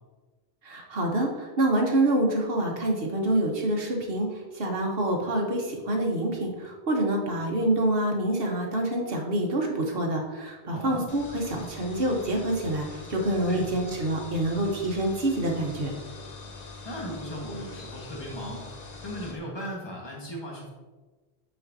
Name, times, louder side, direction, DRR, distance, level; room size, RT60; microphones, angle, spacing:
voice 1, 0.6-15.9, right 1 dB, 65° right, 1 dB, 1.3 m, -26 dB
voice 2, 10.7-11.0 13.5-13.7 16.8-18.7 19.0-20.7, equal, 25° left, -3 dB, 1.4 m, -37 dB
sound 1, 11.1-19.4, left 3 dB, 45° left, 0.8 m, -43 dB
8.5 x 4.4 x 2.7 m, 1.3 s
omnidirectional pair, 1.1 m